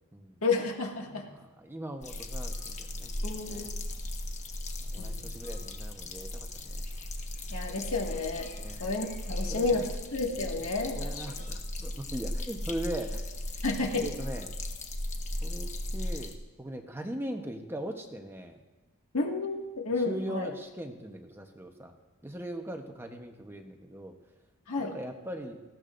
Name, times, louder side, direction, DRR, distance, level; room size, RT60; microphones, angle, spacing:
voice 1, 0.4-1.2 3.2-3.7 5.0-5.2 7.5-8.5 8.8-11.3 13.6-14.1 19.1-20.5 24.7-24.9, left 3 dB, 70° left, 0 dB, 1.9 m, -31 dB
voice 2, 1.3-3.8 4.8-6.8 8.6-8.8 9.5-9.8 10.6-10.7 11.0-13.2 14.0-14.5 15.4-16.3 16.6-18.6 20.1-22.0 22.2-24.1 24.8-25.6, right 1 dB, 10° right, 4 dB, 0.9 m, -40 dB
sound 1, 2.0-16.3, left 1 dB, 35° left, 1.2 m, -37 dB
19.0 x 16.0 x 2.6 m, 1.1 s
head